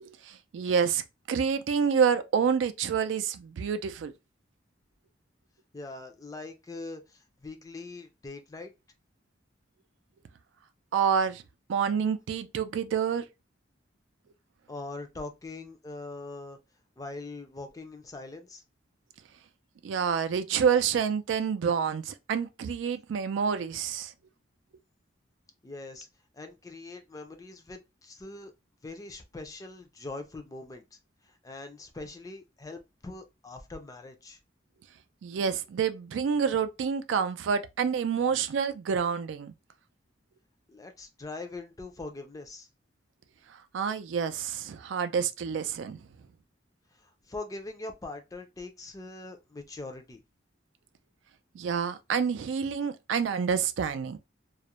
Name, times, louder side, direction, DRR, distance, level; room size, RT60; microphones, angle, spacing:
voice 1, 0.0-1.0 1.3-4.1 10.9-11.4 11.7-13.3 19.8-24.1 35.2-39.5 43.7-46.0 51.5-54.2, right 6 dB, 80° right, 0.3 m, -28 dB
voice 2, 5.7-8.7 14.7-16.6 17.0-18.6 25.6-26.1 26.3-28.5 28.8-30.8 31.2-34.4 40.7-42.7 46.9-50.2, left 2 dB, 20° left, 0.4 m, -42 dB
2.3 x 2.1 x 2.9 m
head